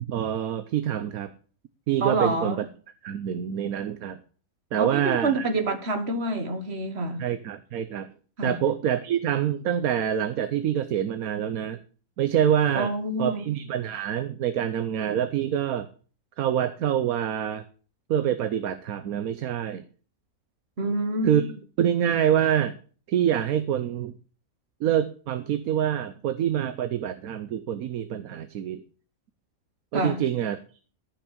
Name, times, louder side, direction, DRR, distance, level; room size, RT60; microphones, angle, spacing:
voice 1, 0.1-1.3 1.9-2.6 3.0-4.2 4.7-5.5 7.2-8.1 8.4-11.8 12.2-12.9 13.2-15.9 16.4-17.6 18.1-19.8 21.2-21.5 21.8-22.8 23.1-24.1 24.8-28.8 29.9-30.6, right 9 dB, 85° right, 1.2 m, -26 dB
voice 2, 2.0-2.6 4.8-7.2 8.4-8.6 12.7-13.4 20.8-21.5 29.9-30.2, right 2 dB, 50° right, 1.9 m, -27 dB
13.5 x 6.0 x 6.7 m
omnidirectional pair, 1.5 m